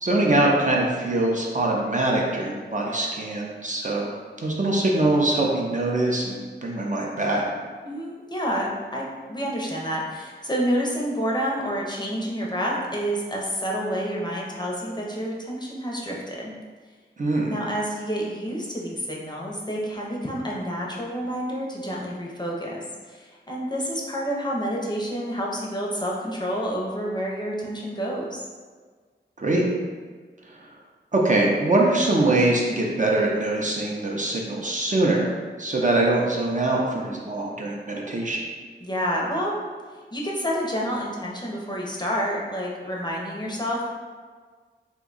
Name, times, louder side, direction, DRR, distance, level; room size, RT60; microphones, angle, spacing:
voice 1, 0.0-4.1 4.4-7.5 17.2-17.5 29.4-29.6 31.1-35.3 35.6-38.4, right 2 dB, 40° right, -2 dB, 0.5 m, -23 dB
voice 2, 7.8-16.5 17.5-28.4 38.8-39.6 40.1-43.9, equal, 20° left, -3 dB, 0.5 m, -29 dB
2.7 x 2.2 x 3.8 m, 1.5 s
wide cardioid pair, 75°, 19 cm